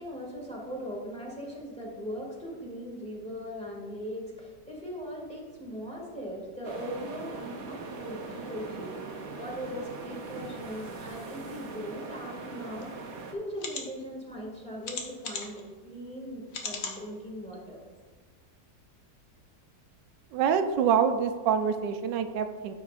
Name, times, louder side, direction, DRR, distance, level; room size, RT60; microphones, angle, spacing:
voice 1, 0.0-13.0 13.3-17.8, equal, 5° left, -4 dB, 1.9 m, -39 dB
sound 1, 6.6-13.3, right 4 dB, 50° right, 1.1 m, -41 dB
sound 2, 12.8-12.9 13.5-13.8 14.8-15.6 16.5-17.0 17.5-17.6 18.0-18.1, left 5 dB, 70° left, 1.5 m, -36 dB
voice 2, 20.3-22.7, right 7 dB, 90° right, 7 dB, 1.3 m, -26 dB
12.5 x 6.0 x 2.4 m, 1.5 s
omnidirectional pair, 1.9 m